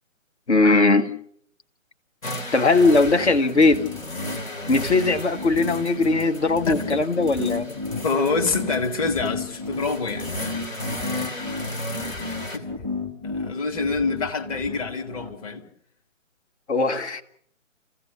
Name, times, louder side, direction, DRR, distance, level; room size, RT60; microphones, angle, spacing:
voice 1, 0.5-1.1 2.5-3.8 4.7-7.7 16.7-17.2, left 3 dB, 55° left, 1.7 m, -19 dB
sound 1, 2.2-12.6, left 1 dB, 70° left, 2.9 m, -35 dB
sound 2, 2.8-15.3, left 4 dB, 10° left, 1.1 m, -33 dB
voice 2, 6.7-7.0 7.9-10.7 12.3-12.8 13.2-15.6, left 4 dB, 25° left, 1.7 m, -27 dB
29.0 x 15.5 x 6.7 m
figure-of-eight pair, 145°, 40 cm